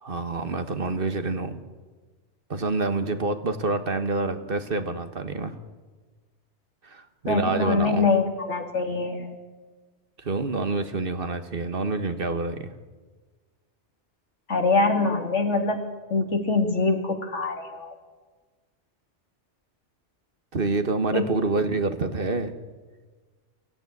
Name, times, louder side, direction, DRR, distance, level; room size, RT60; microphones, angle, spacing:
voice 1, 0.0-1.6 2.5-5.6 6.8-8.1 10.2-12.7 20.5-22.5, right 3 dB, 50° right, 9 dB, 1.5 m, -27 dB
voice 2, 7.3-9.4 14.5-15.8 16.1-17.9 21.1-21.3, left 3 dB, 85° left, 4 dB, 2.9 m, -24 dB
23.0 x 15.5 x 9.6 m, 1.4 s
omnidirectional pair, 1.2 m